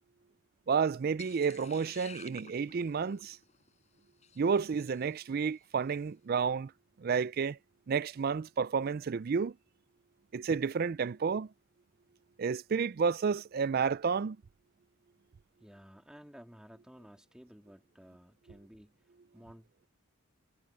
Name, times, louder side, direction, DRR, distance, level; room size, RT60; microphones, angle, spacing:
voice 1, 0.7-3.4 4.4-6.7 7.0-7.6 7.9-9.5 10.3-11.5 12.4-14.4, right 5 dB, 40° right, 0.3 m, -31 dB
sound 1, 1.2-5.5, left 6 dB, 30° left, 7.3 m, -54 dB
voice 2, 15.6-19.9, equal, 5° right, 1.8 m, -55 dB
head